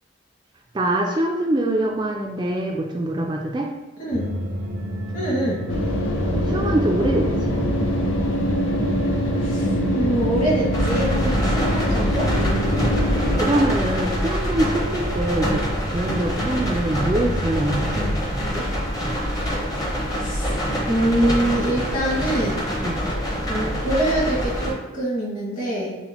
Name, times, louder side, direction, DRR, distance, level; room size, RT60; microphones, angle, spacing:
voice 1, 0.7-3.7 6.3-7.6 12.3-18.7 22.8-23.0, right 1 dB, 25° right, 0 dB, 0.3 m, -24 dB
voice 2, 4.0-4.3 5.1-5.6 9.4-12.3 20.2-20.4 20.9-22.6 23.5-26.0, right 1 dB, 45° left, -5 dB, 1.5 m, -24 dB
sound 1, 4.1-18.2, right 2 dB, 70° right, 0.6 m, -30 dB
sound 2, 5.7-13.4, left 1 dB, 90° left, 0.5 m, -24 dB
sound 3, 10.7-24.7, equal, 20° left, 0.7 m, -25 dB
5.8 x 2.1 x 2.9 m, 1.1 s
head